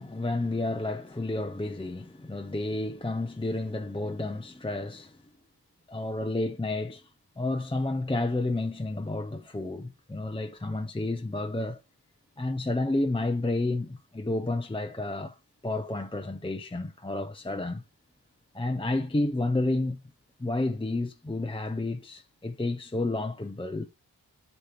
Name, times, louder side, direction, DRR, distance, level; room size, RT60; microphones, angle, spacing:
voice 1, 0.0-5.2 5.9-7.1 7.4-11.8 12.4-15.4 15.6-17.8 18.5-20.0 20.4-23.9, left 2 dB, 15° left, 0.6 m, -30 dB
8.4 x 3.0 x 5.9 m
wide cardioid pair, 75°, 38 cm